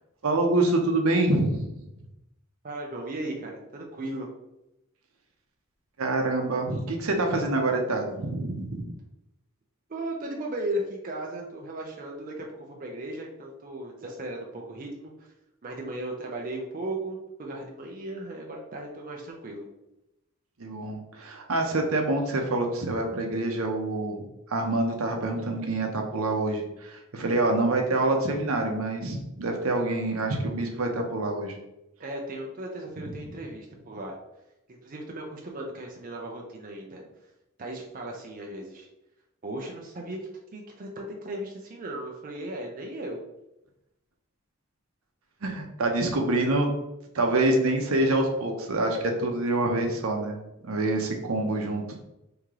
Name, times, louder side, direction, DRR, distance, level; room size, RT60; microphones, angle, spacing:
voice 1, 0.2-1.9 6.0-8.9 20.6-24.2 24.5-31.6 45.4-46.7 47.1-50.4 50.6-51.8, right 2 dB, 75° right, 3 dB, 0.7 m, -26 dB
voice 2, 2.6-4.3 9.9-15.3 15.6-19.7 32.0-34.2 34.7-37.1 37.6-38.9 39.4-43.2, right 1 dB, 40° right, 0 dB, 0.5 m, -36 dB
3.1 x 2.8 x 3.6 m, 0.90 s
head